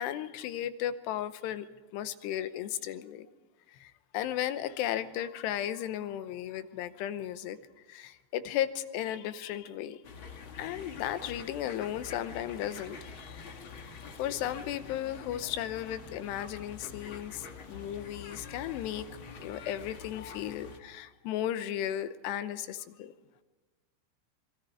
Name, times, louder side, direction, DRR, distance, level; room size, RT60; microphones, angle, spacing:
voice 1, 0.0-1.7 1.9-3.3 3.7-7.6 7.9-10.0 10.6-23.1, left 11 dB, 90° left, 12 dB, 3.0 m, -35 dB
sound 1, 10.0-20.8, left 5 dB, 55° left, 1.4 m, -46 dB
27.0 x 22.0 x 4.7 m, 1.2 s
omnidirectional pair, 4.8 m